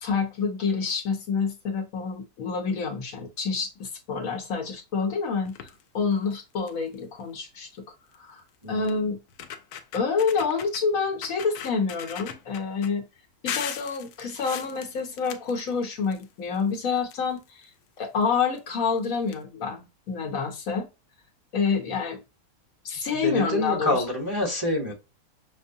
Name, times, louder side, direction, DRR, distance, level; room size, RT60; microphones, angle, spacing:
voice 1, 0.0-5.5 5.9-7.7 8.2-8.4 8.7-9.2 9.9-13.0 13.4-17.6 18.0-20.9 21.5-22.2 22.8-24.0, left 5 dB, 70° left, 1.2 m, -27 dB
sound 1, 5.4-5.8 6.3-6.4 6.7-6.9 8.1-8.2 8.9-9.0 9.3-10.8 11.2-12.9 13.5-16.2 16.5-17.6 18.5-18.6 18.9-19.0 19.3-19.4, left 9 dB, 90° left, 1.1 m, -38 dB
voice 2, 8.6-9.1 23.2-24.9, left 1 dB, 15° right, 1.0 m, -27 dB
5.9 x 2.1 x 2.6 m
omnidirectional pair, 1.5 m